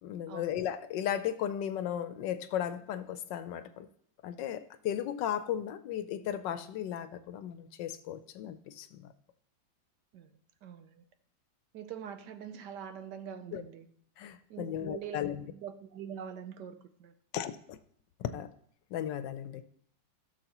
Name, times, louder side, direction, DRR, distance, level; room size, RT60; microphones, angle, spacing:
voice 1, 0.0-3.9 4.2-9.1 13.5-13.7 14.2-15.4 17.3-17.8 18.2-18.5 18.9-19.6, left 10 dB, 75° left, 1.3 m, -35 dB
voice 2, 10.6-11.0 11.7-13.9 14.5-17.1, right 8 dB, 75° right, 1.3 m, -44 dB
15.5 x 7.0 x 3.0 m
omnidirectional pair, 2.0 m